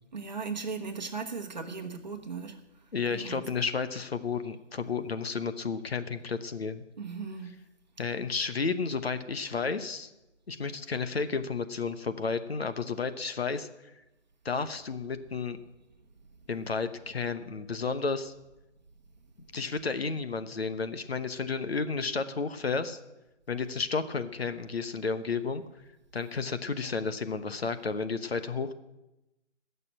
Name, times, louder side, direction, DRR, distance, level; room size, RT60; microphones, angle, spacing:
voice 1, 0.1-2.6 3.1-3.4 7.0-7.5, right 5 dB, 35° right, 4 dB, 1.2 m, -37 dB
voice 2, 2.9-6.8 8.0-10.1 10.5-13.7 14.4-15.6 16.5-18.3 19.5-23.0 23.5-25.6 26.1-28.7, left 4 dB, 55° left, 11 dB, 1.0 m, -32 dB
15.5 x 6.8 x 8.9 m, 0.98 s
hypercardioid pair, 175°, 37 cm